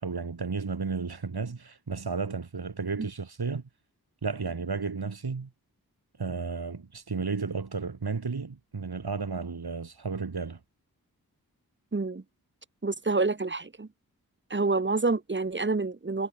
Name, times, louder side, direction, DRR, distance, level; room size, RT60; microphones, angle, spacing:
voice 1, 0.0-3.6 4.2-5.5 6.2-10.6, right 4 dB, 85° right, 5.5 m, -33 dB
voice 2, 11.9-12.2 12.8-13.9 14.5-16.3, right 3 dB, 30° right, 1.4 m, -28 dB
wide cardioid pair, 80°, 37 cm